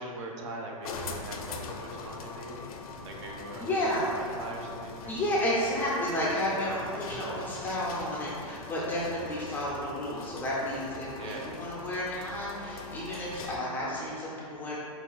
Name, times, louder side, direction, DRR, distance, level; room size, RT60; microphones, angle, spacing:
voice 1, 0.0-2.7 3.0-5.5 6.6-7.6 11.2-11.6, right 2 dB, 55° right, 0 dB, 0.6 m, -42 dB
sound 1, 0.8-13.8, left 4 dB, 75° left, 0.4 m, -42 dB
voice 2, 3.6-4.0 5.1-14.8, left 1 dB, 10° left, -7 dB, 0.4 m, -32 dB
4.8 x 2.3 x 2.3 m, 2.4 s
hypercardioid pair, 130°, 19 cm